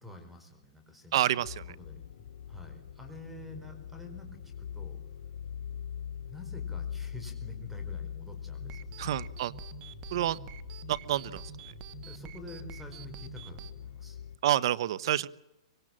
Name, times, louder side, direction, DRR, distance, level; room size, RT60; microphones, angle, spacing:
voice 1, 0.0-1.2 1.8-2.0 2.5-5.0 6.3-8.9 12.1-14.2, left 2 dB, 5° right, 8 dB, 4.6 m, -48 dB
voice 2, 1.1-1.6 9.0-9.5 10.1-10.4 10.9-11.4 14.4-15.3, right 12 dB, 55° right, 19 dB, 1.0 m, -28 dB
sound 1, 1.4-14.4, left 8 dB, 80° left, 3.0 m, -42 dB
sound 2, 8.6-13.7, right 10 dB, 30° right, 1.1 m, -47 dB
24.5 x 22.0 x 7.6 m, 0.91 s
hypercardioid pair, 155°, 3 cm